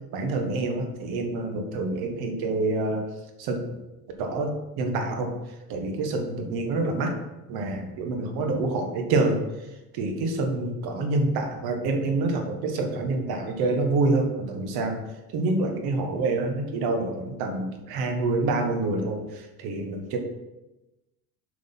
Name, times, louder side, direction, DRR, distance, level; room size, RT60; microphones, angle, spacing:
voice 1, 0.1-3.1 3.4-3.8 4.2-5.3 5.7-7.2 7.5-9.4 9.9-15.0 15.3-20.2, right 2 dB, 70° right, 4 dB, 1.6 m, -27 dB
7.7 x 5.1 x 5.9 m, 1.0 s
cardioid pair, 160°, 38 cm